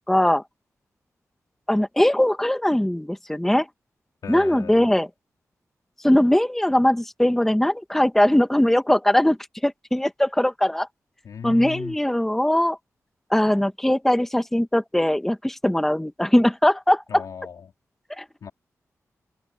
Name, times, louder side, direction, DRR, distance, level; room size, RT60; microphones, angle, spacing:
voice 1, 0.1-0.4 1.7-3.7 4.3-5.1 6.0-9.4 9.6-10.9 11.4-12.8 13.3-17.2 18.2-18.3, left 1 dB, 5° left, 1.1 m, -20 dB
voice 2, 4.2-4.9 11.2-12.0 17.1-17.7 18.4-18.5, left 7 dB, 90° left, 3.3 m, -37 dB
wide cardioid pair, 140°, 6 cm